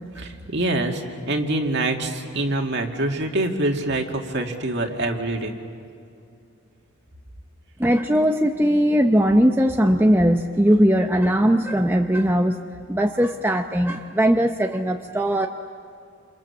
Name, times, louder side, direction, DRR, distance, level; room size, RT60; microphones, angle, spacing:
voice 1, 0.2-5.5, right 2 dB, 50° right, 3 dB, 2.3 m, -25 dB
voice 2, 7.8-12.6 12.9-15.5, equal, 10° right, 4 dB, 0.6 m, -19 dB
28.5 x 28.5 x 7.2 m, 2.6 s
head